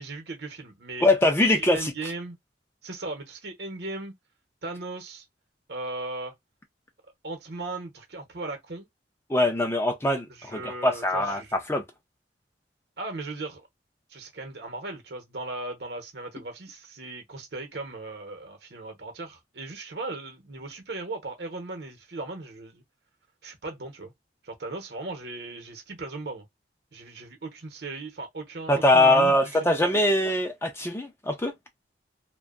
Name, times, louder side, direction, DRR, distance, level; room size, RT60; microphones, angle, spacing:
voice 1, 0.0-1.1 1.7-2.4 2.8-4.1 4.6-5.2 5.7-6.3 7.2-8.9 10.4-11.5 13.0-13.7 14.1-22.8 23.4-24.1 24.4-26.5 26.9-29.8, right 2 dB, 65° right, 0.9 m, -37 dB
voice 2, 1.0-1.9 9.3-11.8 28.7-31.5, left 1 dB, 15° left, 0.4 m, -22 dB
2.6 x 2.2 x 2.4 m
head